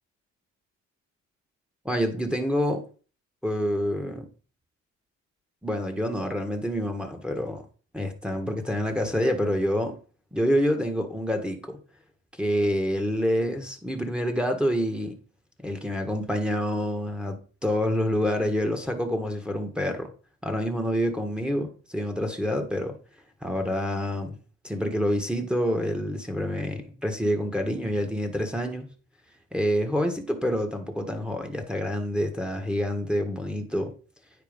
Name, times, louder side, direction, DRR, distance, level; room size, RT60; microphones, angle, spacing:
voice 1, 1.8-2.8 3.4-4.3 5.6-7.6 7.9-10.0 10.3-11.8 12.4-15.2 15.6-20.1 20.4-23.0 23.4-24.3 24.6-28.9 29.5-33.9, equal, 5° right, 1.6 m, -27 dB
9.2 x 4.5 x 5.3 m
cardioid pair, 90°, 30 cm